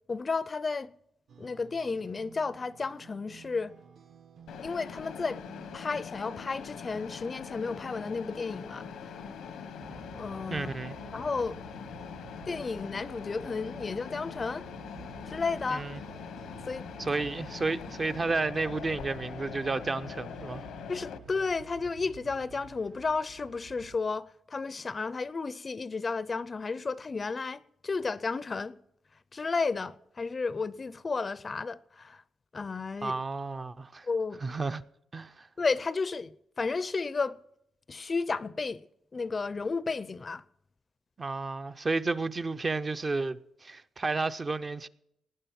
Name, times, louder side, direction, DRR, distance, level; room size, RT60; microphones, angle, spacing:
voice 1, 0.1-0.9 1.4-3.7 4.6-5.4 5.7-8.8 10.2-10.7 11.1-11.6 12.5-14.7 15.2-15.8 16.7-16.9 17.1-17.2 20.9-28.8 29.3-32.2 32.5-33.2 34.0-34.5 35.6-37.4 37.9-38.9 39.1-40.4, left 4 dB, 30° left, 0.5 m, -33 dB
sound 1, 1.3-18.8, right 6 dB, 60° right, 1.0 m, -56 dB
Mechanisms, 4.5-21.2, left 7 dB, 85° left, 0.9 m, -43 dB
sound 2, 9.8-24.0, right 6 dB, 85° right, 1.2 m, -51 dB
voice 2, 10.5-11.0 15.7-16.0 17.0-20.7 33.0-34.1 34.4-34.8 35.1-35.5 41.2-44.9, right 3 dB, 25° right, 0.5 m, -32 dB
18.5 x 9.6 x 5.9 m
cardioid pair, 135°, 0 cm